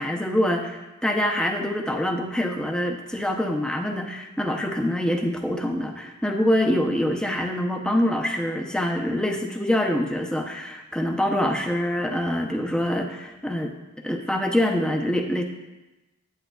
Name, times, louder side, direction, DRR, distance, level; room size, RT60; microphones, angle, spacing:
voice 1, 0.0-13.7 14.0-15.4, left 1 dB, 5° left, 2 dB, 0.6 m, -25 dB
8.8 x 8.8 x 2.3 m, 1.0 s
head